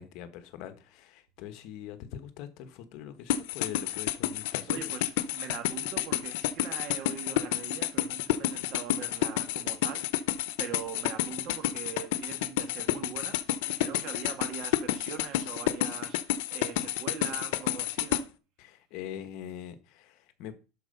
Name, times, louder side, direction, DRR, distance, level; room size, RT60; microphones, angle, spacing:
voice 1, 0.0-4.8 18.6-20.5, left 10 dB, 55° left, 1.3 m, -43 dB
sound 1, 3.3-18.2, left 14 dB, 85° left, 0.8 m, -30 dB
voice 2, 4.7-10.3 10.6-18.3, right 8 dB, 50° right, 1.8 m, -42 dB
12.0 x 4.6 x 5.5 m
cardioid pair, 165°, 0 cm